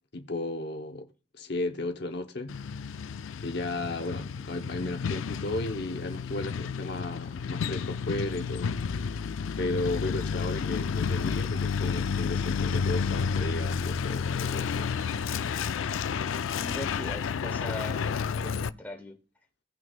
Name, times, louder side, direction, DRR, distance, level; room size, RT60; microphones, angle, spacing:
voice 1, 0.1-1.1 1.3-2.6 3.4-9.3 9.6-14.9, left 2 dB, 60° left, 0.9 m, -34 dB
Truck, 2.5-18.7, left 6 dB, 90° left, 0.4 m, -31 dB
voice 2, 16.5-18.0 18.3-19.2, left 1 dB, 10° left, 1.3 m, -40 dB
17.5 x 6.2 x 2.4 m
head